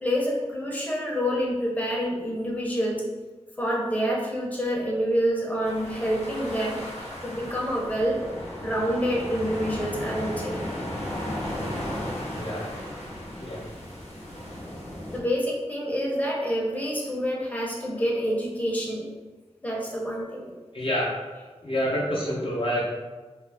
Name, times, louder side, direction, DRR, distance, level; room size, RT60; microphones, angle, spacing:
voice 1, 0.0-3.0 3.6-6.8 7.2-8.2 8.6-10.6 15.1-19.1 19.6-20.5, equal, 15° left, -4 dB, 0.6 m, -27 dB
sound 1, 5.6-15.2, left 1 dB, 80° left, 0.9 m, -35 dB
voice 2, 12.3-12.8 13.4-13.6 20.7-21.1 21.6-22.8, equal, 50° left, -5 dB, 0.6 m, -27 dB
2.4 x 2.0 x 3.3 m, 1.3 s
wide cardioid pair, 55°, 11 cm